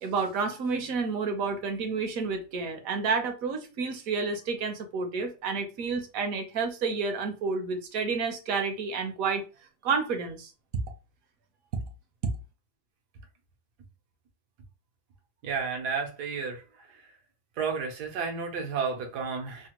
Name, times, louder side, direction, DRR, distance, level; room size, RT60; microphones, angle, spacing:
voice 1, 0.0-9.4 9.8-10.5, right 4 dB, 65° right, 1.1 m, -30 dB
voice 2, 15.4-17.1 17.6-19.7, right 5 dB, 85° right, 1.4 m, -32 dB
3.4 x 2.1 x 2.9 m
omnidirectional pair, 1.7 m